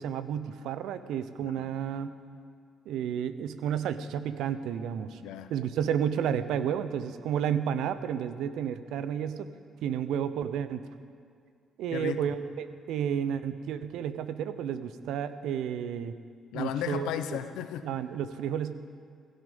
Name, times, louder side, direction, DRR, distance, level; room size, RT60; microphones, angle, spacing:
voice 1, 0.0-2.1 2.9-5.2 5.5-9.5 9.8-10.8 11.8-16.1 16.5-17.1 17.8-18.7, right 8 dB, 75° right, 12 dB, 0.8 m, -31 dB
voice 2, 1.4-1.7 5.2-5.5 11.9-12.3 16.5-18.0, left 10 dB, 80° left, 10 dB, 0.9 m, -35 dB
16.5 x 16.0 x 5.4 m, 2.2 s
hypercardioid pair, 55°, 0 cm